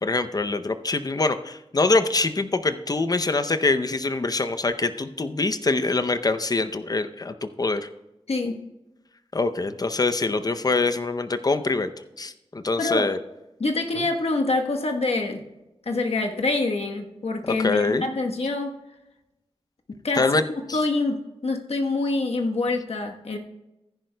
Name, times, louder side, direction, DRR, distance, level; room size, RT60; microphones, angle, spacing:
voice 1, 0.0-7.9 9.3-11.9 12.2-13.2 14.0-14.1 17.6-18.1 20.1-20.4 20.7-20.8, left 3 dB, 35° left, 10 dB, 0.6 m, -24 dB
voice 2, 13.6-15.4 15.9-18.7 20.0-20.2 20.7-23.4, left 3 dB, 75° left, 3 dB, 1.2 m, -25 dB
15.0 x 10.5 x 2.2 m, 0.97 s
wide cardioid pair, 95°, 11 cm